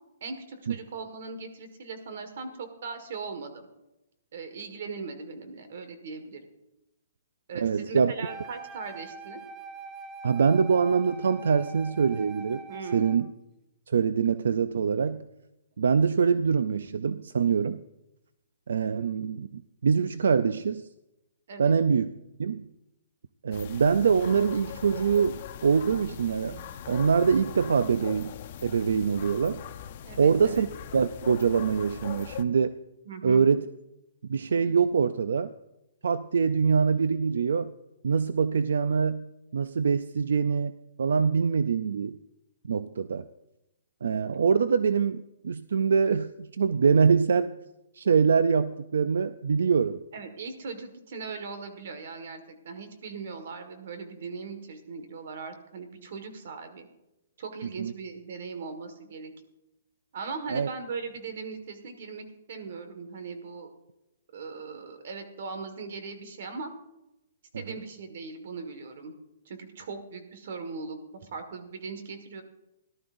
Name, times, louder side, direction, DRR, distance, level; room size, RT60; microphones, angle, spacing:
voice 1, 0.2-3.7 4.3-6.4 7.5-9.4 12.7-13.1 21.5-21.7 30.0-30.7 33.0-33.4 50.1-56.9 57.4-59.3 60.1-63.7 64.3-66.7 67.5-69.1 69.4-72.4, right 4 dB, 50° right, 8 dB, 1.7 m, -39 dB
voice 2, 7.6-8.1 10.2-12.7 12.9-13.3 13.9-15.3 15.8-17.8 18.7-20.9 21.6-22.1 22.4-22.7 23.4-28.3 28.6-29.6 30.2-30.7 30.9-32.8 33.2-33.7 34.3-35.5 36.0-37.7 38.0-40.7 41.0-42.2 42.7-43.2 44.0-47.5 47.9-50.0 57.8-57.9 60.5-60.7, right 6 dB, 80° right, 13 dB, 0.4 m, -24 dB
Wind instrument woodwind instrument, 8.3-13.3, right 3 dB, 15° right, 0.5 m, -44 dB
sound 1, 23.5-32.4, left 9 dB, 35° left, 0.6 m, -41 dB
18.0 x 12.0 x 2.6 m, 0.92 s
hypercardioid pair, 175°, 0 cm